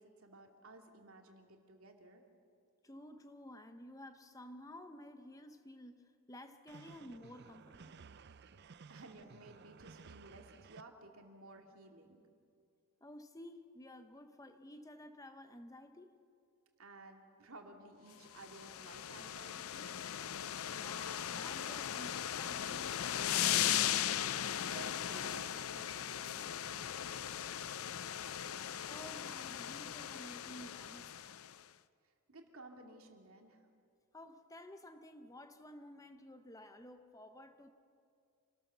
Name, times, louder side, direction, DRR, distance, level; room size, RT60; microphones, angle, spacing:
voice 1, 0.0-2.2 8.9-12.2 16.8-20.0 24.6-26.9 32.0-33.7, right 2 dB, 70° right, 3 dB, 2.5 m, -55 dB
voice 2, 2.8-8.0 13.0-16.1 20.8-23.8 28.9-31.3 34.1-37.7, left 1 dB, 15° left, 8 dB, 0.9 m, -53 dB
sound 1, 6.7-10.8, right 5 dB, 50° right, 0.5 m, -56 dB
sound 2, 18.3-31.5, left 10 dB, 70° left, 0.5 m, -38 dB
27.5 x 18.5 x 6.8 m, 2.4 s
head